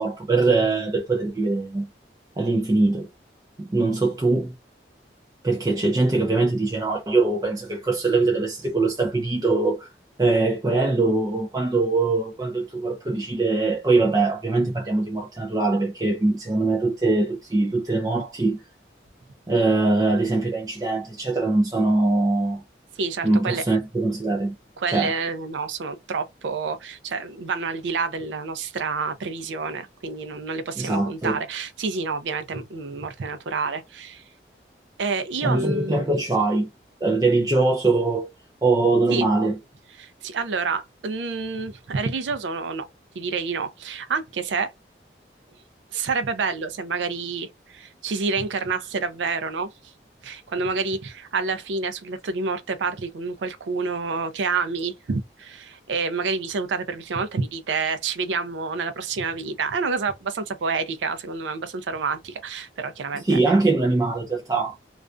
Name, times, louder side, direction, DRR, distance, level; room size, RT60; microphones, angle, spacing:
voice 1, 0.0-1.9 2.4-3.1 3.6-4.5 5.4-9.9 10.2-18.6 19.5-22.6 23.2-24.5 24.9-25.1 30.8-31.4 35.4-36.7 37.0-38.3 38.6-39.6 63.1-64.7, right 3 dB, 20° right, 0.4 m, -22 dB
voice 2, 23.0-23.6 24.8-34.2 35.0-36.0 39.1-39.3 40.0-42.9 43.2-44.7 45.9-49.7 50.2-63.4, right 4 dB, 90° right, 0.4 m, -28 dB
2.4 x 2.1 x 2.4 m
head